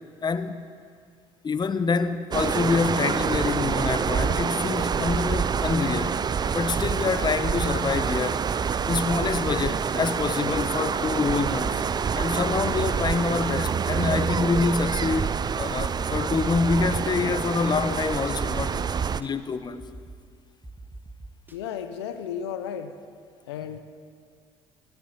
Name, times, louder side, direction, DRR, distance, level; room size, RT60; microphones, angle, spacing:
voice 1, 0.2-0.6 1.4-6.3 6.5-8.4 8.9-11.8 12.1-18.9 19.2-19.8, left 4 dB, 35° left, 1.0 m, -26 dB
sound 1, 2.3-19.2, right 6 dB, 30° right, 0.5 m, -27 dB
sound 2, 2.6-16.9, left 4 dB, 55° left, 1.9 m, -51 dB
sound 3, 17.8-17.9 18.2-18.3 18.6-19.3 19.8-20.2 20.6-21.6, right 2 dB, 15° right, 1.7 m, -43 dB
voice 2, 21.5-23.0 23.5-23.8, left 8 dB, 85° left, 0.7 m, -33 dB
15.0 x 9.9 x 8.2 m
hypercardioid pair, 60°, 13 cm